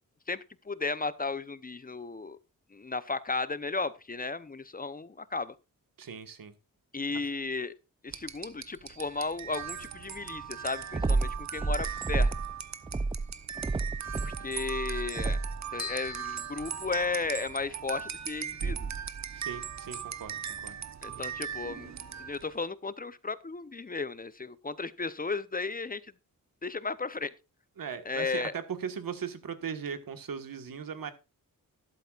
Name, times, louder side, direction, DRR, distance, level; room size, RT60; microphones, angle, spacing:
voice 1, 0.3-2.4 2.7-5.5 6.9-7.7 8.0-12.3 14.2-15.4 15.7-18.8 21.0-21.9 22.2-26.0 26.6-27.3 28.1-28.5, left 4 dB, 25° left, 0.7 m, -34 dB
voice 2, 6.0-6.5 7.1-7.2 19.3-20.7 27.8-31.1, right 7 dB, 75° right, 1.5 m, -38 dB
sound 1, 8.1-22.5, right 7 dB, 55° right, 1.0 m, -39 dB
sound 2, 10.9-12.5 12.9-15.6, right 3 dB, 15° right, 0.4 m, -30 dB
sound 3, 15.8-17.6, left 7 dB, 45° left, 1.6 m, -44 dB
13.0 x 11.5 x 2.4 m
wide cardioid pair, 105°, 34 cm